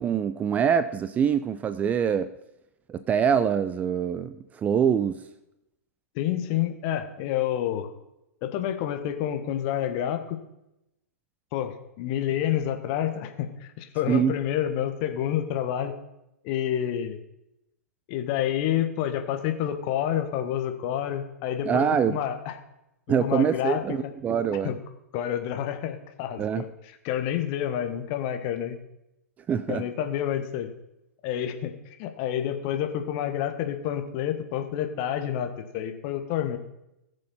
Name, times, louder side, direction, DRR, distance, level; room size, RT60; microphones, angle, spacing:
voice 1, 0.0-2.3 2.9-5.2 14.1-14.4 21.6-22.2 23.1-24.7 26.4-26.6 29.5-29.9, right 7 dB, 20° right, 13 dB, 0.4 m, -24 dB
voice 2, 6.1-7.9 8.4-10.4 11.5-15.9 16.4-17.2 18.1-22.5 23.1-24.1 24.6-24.8 25.1-26.7 27.0-28.8 29.7-30.7 31.2-36.6, left 10 dB, 40° left, 7 dB, 1.4 m, -29 dB
19.5 x 6.8 x 4.3 m, 0.87 s
figure-of-eight pair, 105°, 8 cm